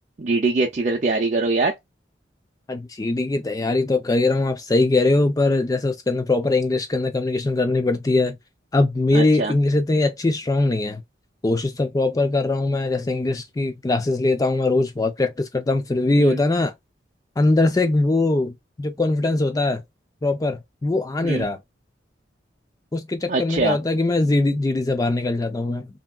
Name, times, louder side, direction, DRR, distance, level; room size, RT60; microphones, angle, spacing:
voice 1, 0.2-1.7 9.1-9.5 16.2-16.4 21.2-21.4 23.3-23.8, right 3 dB, 40° right, 0.5 m, -22 dB
voice 2, 2.7-8.4 8.7-11.0 11.4-16.7 17.4-18.5 18.8-19.8 20.2-21.6 22.9-25.9, left 2 dB, 20° left, 0.3 m, -21 dB
2.9 x 2.8 x 2.3 m
head